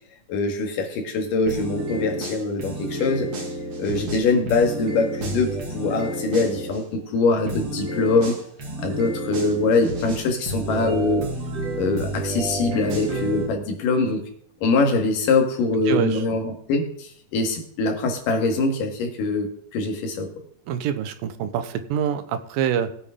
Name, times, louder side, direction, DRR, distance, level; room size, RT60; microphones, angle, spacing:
voice 1, 0.3-3.3 3.8-8.4 8.8-11.3 11.8-14.2 14.6-20.3, left 3 dB, 70° left, 4 dB, 3.3 m, -23 dB
sound 1, 1.5-6.8 7.5-13.5, right 1 dB, 45° right, 3.0 m, -30 dB
voice 2, 15.9-16.2 20.7-22.9, right 9 dB, 80° right, 10 dB, 2.6 m, -25 dB
19.0 x 8.5 x 3.7 m, 0.63 s
omnidirectional pair, 4.2 m